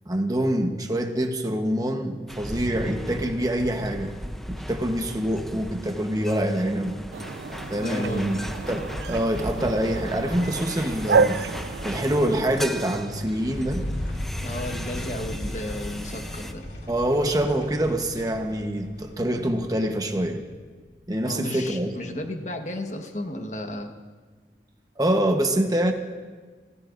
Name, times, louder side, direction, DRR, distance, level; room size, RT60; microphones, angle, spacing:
voice 1, 0.1-4.1 4.5-7.0 7.7-8.4 8.7-11.5 11.8-13.8 16.9-20.4 21.1-21.9 25.0-25.9, right 1 dB, 20° right, 4 dB, 1.0 m, -25 dB
sound 1, 2.3-16.5, equal, ahead, 0.6 m, -37 dB
sound 2, 7.1-13.0, right 4 dB, 75° right, 0.4 m, -29 dB
voice 2, 7.7-8.4 14.4-16.6 21.2-23.9, left 1 dB, 40° left, 4 dB, 1.3 m, -33 dB
sound 3, 10.7-21.0, left 1 dB, 80° left, 2.8 m, -37 dB
26.5 x 16.5 x 2.6 m, 1.5 s
head